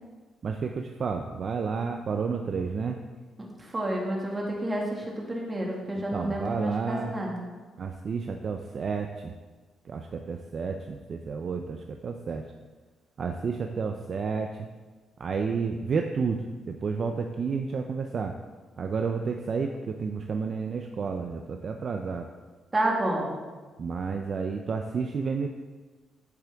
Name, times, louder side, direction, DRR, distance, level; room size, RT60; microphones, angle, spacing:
voice 1, 0.4-3.0 6.1-7.1 7.8-9.3 9.8-12.5 13.2-14.7 15.2-18.3 18.8-22.3 23.8-25.5, right 5 dB, 45° right, 4 dB, 0.6 m, -31 dB
voice 2, 3.4-7.3 22.7-23.4, right 1 dB, 20° right, -2 dB, 2.1 m, -30 dB
10.5 x 8.1 x 3.5 m, 1.3 s
cardioid pair, 130°, 0 cm